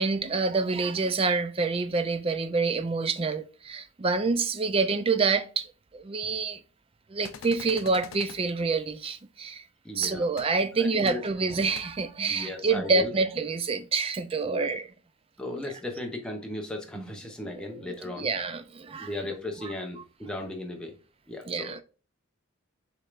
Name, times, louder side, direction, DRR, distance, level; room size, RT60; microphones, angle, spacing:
voice 1, 0.0-6.6 7.1-9.6 9.9-14.9 17.0-17.1 17.4-17.7 18.2-19.1 21.5-21.8, right 4 dB, 25° right, 0.4 m, -27 dB
sound 1, 7.2-8.4 10.0-10.1 10.4-10.5 11.1-11.2 11.7-11.8, left 6 dB, 75° left, 0.5 m, -43 dB
voice 2, 9.8-10.3 10.8-11.2 12.3-13.1 14.5-14.7 15.4-18.3 19.0-21.0 21.3-21.8, left 2 dB, 5° left, 0.8 m, -36 dB
6.4 x 3.3 x 2.5 m
head